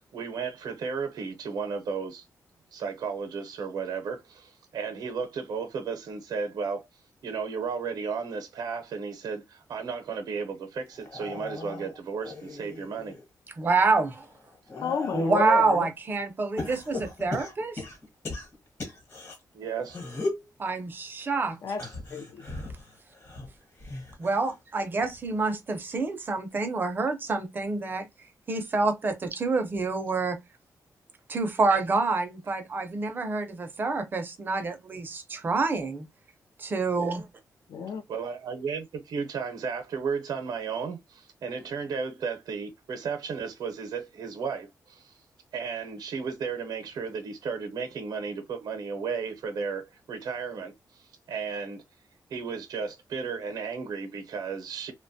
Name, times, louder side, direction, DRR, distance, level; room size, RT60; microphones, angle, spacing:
voice 1, 0.0-2.2 2.7-6.9 7.2-13.1 19.5-20.0 21.8-21.9 38.1-45.2 45.5-51.8 52.3-54.9, right 5 dB, 80° right, 0.6 m, -34 dB
sound 1, 10.9-13.2 13.7-15.7 16.6-19.4 19.9-20.5 21.7-24.6 24.9-25.4 26.5-26.6, left 3 dB, 45° left, 1.1 m, -37 dB
voice 2, 13.6-14.3 15.1-17.8 20.6-21.6 24.2-28.1 28.5-30.4 31.3-36.1 36.6-37.3, right 3 dB, 30° right, 0.5 m, -27 dB
voice 3, 14.8-15.9 21.6-21.8 22.1-22.5 37.7-38.0, left 5 dB, 70° left, 0.5 m, -31 dB
2.8 x 2.2 x 2.6 m
wide cardioid pair, 175°, 7 cm